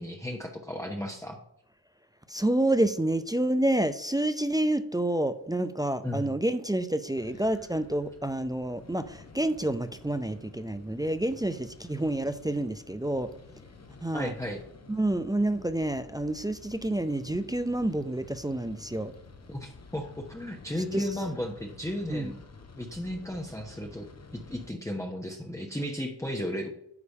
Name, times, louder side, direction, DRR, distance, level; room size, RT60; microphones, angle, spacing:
voice 1, 0.0-1.4 6.0-6.4 14.1-14.6 19.5-22.4 22.7-24.1 24.3-26.7, equal, 5° left, 1.0 m, -34 dB
voice 2, 2.3-13.3 14.0-14.3 14.9-19.1 20.9-21.1 22.1-22.3, right 1 dB, 10° right, 0.5 m, -28 dB
sound 1, 7.1-24.7, left 3 dB, 35° left, 1.1 m, -51 dB
9.8 x 3.3 x 5.3 m
supercardioid pair, 40°, 42 cm